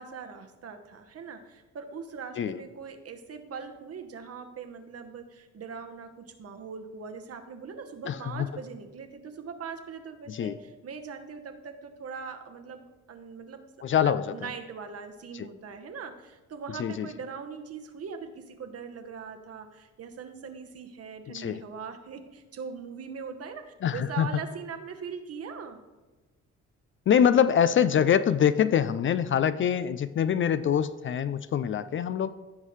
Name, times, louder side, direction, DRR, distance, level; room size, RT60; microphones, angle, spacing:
voice 1, 0.0-13.6 14.0-25.8, right 6 dB, 50° right, 7 dB, 1.1 m, -41 dB
voice 2, 8.1-8.5 10.3-10.5 13.8-14.5 16.8-17.1 21.3-21.6 23.8-24.3 27.1-32.3, left 8 dB, 40° left, 14 dB, 0.4 m, -24 dB
15.5 x 5.6 x 3.2 m, 1.2 s
cardioid pair, 90°, 30 cm